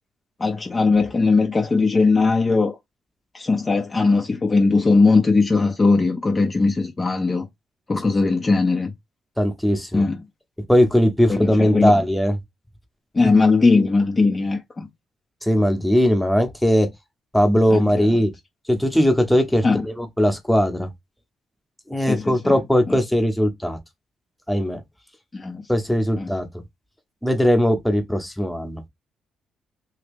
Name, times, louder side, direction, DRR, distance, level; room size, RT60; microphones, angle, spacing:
voice 1, 0.4-2.8 3.3-7.5 7.9-8.9 9.9-10.2 11.3-12.0 13.1-14.9 17.7-18.1 19.6-19.8 22.1-22.6 22.9-23.0 25.3-25.6 26.2-26.3, left 3 dB, 25° left, 0.6 m, -19 dB
voice 2, 9.4-10.0 10.7-12.4 15.4-16.9 17.3-18.3 18.7-20.9 21.9-23.8 24.5-24.8 25.7-26.5 27.2-28.8, equal, 5° left, 0.9 m, -19 dB
2.9 x 2.8 x 3.5 m
cardioid pair, 90°, 0 cm